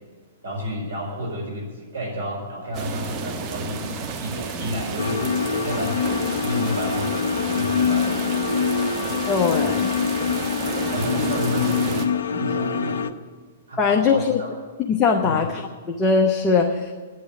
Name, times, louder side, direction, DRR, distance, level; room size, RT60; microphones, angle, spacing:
voice 1, 0.4-8.6 10.8-13.1 13.7-14.5 15.2-15.5, equal, 75° right, -2 dB, 4.5 m, -31 dB
sound 1, 2.7-12.1, right 5 dB, 30° right, 1.2 m, -32 dB
sound 2, 5.0-13.1, left 6 dB, 65° left, 0.6 m, -24 dB
voice 2, 9.3-9.9 13.8-14.4 14.9-15.6 15.9-16.9, left 5 dB, 20° left, 0 dB, 0.9 m, -20 dB
10.0 x 8.5 x 9.8 m, 1.5 s
figure-of-eight pair, 110°, 0 cm